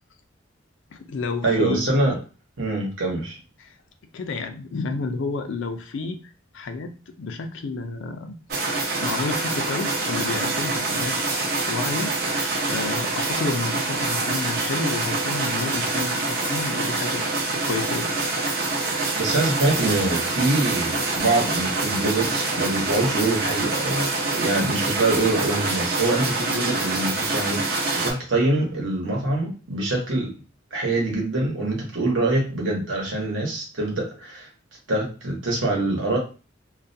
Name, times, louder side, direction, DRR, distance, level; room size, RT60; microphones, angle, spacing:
voice 1, 0.9-2.0 3.6-3.7 4.1-6.2 6.5-8.4 9.0-12.1 12.7-18.1, left 3 dB, 65° left, 7 dB, 0.4 m, -30 dB
voice 2, 1.4-2.2 2.6-3.4 19.2-30.3 30.7-34.5 34.9-36.2, right 2 dB, 70° right, -1 dB, 1.0 m, -24 dB
sound 1, 8.5-28.1, right 3 dB, 50° right, 0.6 m, -26 dB
2.3 x 2.2 x 2.6 m, 0.34 s
head